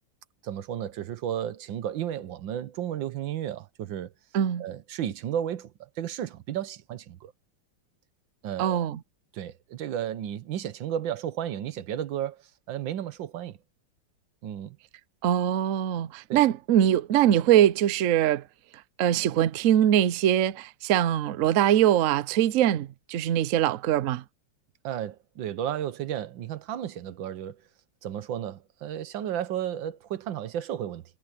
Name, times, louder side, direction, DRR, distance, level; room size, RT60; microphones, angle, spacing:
voice 1, 0.4-4.1 4.6-7.3 8.4-8.8 9.3-12.4 12.7-13.6 14.4-14.8 16.3-16.4 24.8-27.6 28.0-31.0, right 10 dB, 70° right, 1.6 m, -33 dB
voice 2, 4.3-4.6 8.6-9.0 15.2-18.4 19.0-24.2, right 11 dB, 90° right, 0.7 m, -22 dB
omnidirectional pair, 2.3 m